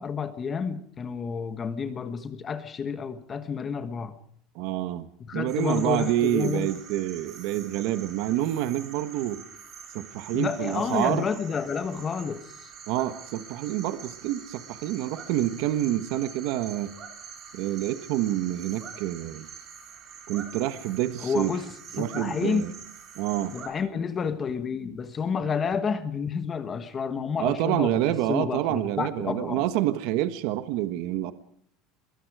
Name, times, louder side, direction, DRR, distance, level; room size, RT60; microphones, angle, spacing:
voice 1, 0.0-4.2 5.3-6.7 10.3-12.7 21.2-21.7 22.0-22.7 23.5-28.0 28.3-29.6, left 6 dB, 20° left, 1.3 m, -30 dB
voice 2, 4.5-5.1 5.3-9.4 9.9-11.3 12.9-16.9 17.5-19.5 20.3-21.5 21.9-22.7 23.2-23.5 27.4-31.3, right 13 dB, 60° right, 1.3 m, -27 dB
sound 1, 5.5-23.7, right 7 dB, 30° right, 3.7 m, -45 dB
24.0 x 22.5 x 4.9 m
cardioid pair, 170°, 0 cm